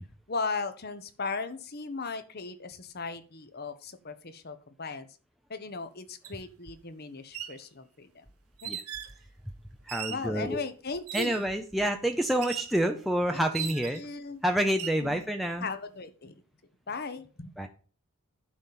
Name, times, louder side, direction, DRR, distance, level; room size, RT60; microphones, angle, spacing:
voice 1, 0.3-5.1 5.5-8.2 8.6-8.7 10.1-11.4 13.3-14.4 15.0-15.2 15.6-16.3 16.9-17.5, left 4 dB, 45° left, 1.0 m, -37 dB
sound 1, 6.2-6.4 7.2-7.6 8.6-9.2 9.9-10.3 11.1-11.5 12.4-12.8 13.5-14.1 14.7-15.0, right 10 dB, 85° right, 1.1 m, -38 dB
voice 2, 9.9-10.6 11.1-14.0 14.4-15.7 17.6-17.7, right 1 dB, ahead, 0.6 m, -28 dB
11.0 x 4.1 x 7.4 m
head